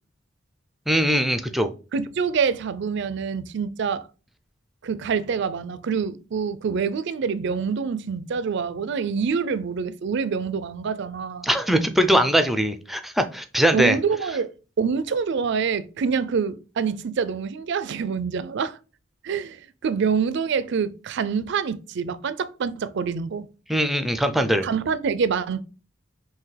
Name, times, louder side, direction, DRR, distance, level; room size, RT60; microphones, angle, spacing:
voice 1, 0.9-1.7 11.4-14.0 23.7-24.7, equal, ahead, 0.4 m, -21 dB
voice 2, 1.9-4.1 4.8-11.5 13.7-14.5 14.8-18.8 19.2-23.5 24.6-25.6, right 6 dB, 60° right, 0.4 m, -26 dB
5.7 x 2.7 x 3.2 m
head